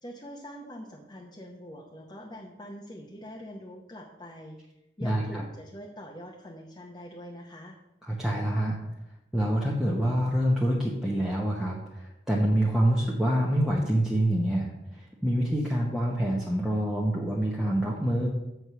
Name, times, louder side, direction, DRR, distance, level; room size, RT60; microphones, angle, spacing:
voice 1, 0.0-4.6 5.0-7.8, equal, 25° left, -1 dB, 0.9 m, -43 dB
voice 2, 5.0-5.4 8.0-8.8 9.3-18.3, right 1 dB, ahead, -4 dB, 0.9 m, -26 dB
7.3 x 4.7 x 6.7 m, 0.90 s
head